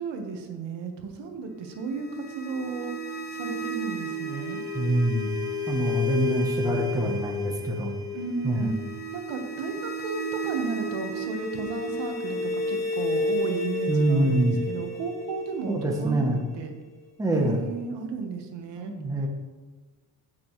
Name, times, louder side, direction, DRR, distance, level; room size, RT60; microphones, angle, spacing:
voice 1, 0.0-2.9 3.3-4.6 8.1-8.8 9.1-16.7 17.3-18.9, right 4 dB, 75° right, 4 dB, 1.5 m, -34 dB
sound 1, 1.7-16.7, left 1 dB, 40° left, 1.8 m, -32 dB
voice 2, 4.7-5.3 5.7-7.9 8.4-8.7 13.9-14.6 15.7-16.4 17.2-17.6 18.8-19.3, right 1 dB, 10° right, 1 dB, 0.9 m, -25 dB
15.5 x 6.2 x 3.2 m, 1.3 s
cardioid pair, 170°, 42 cm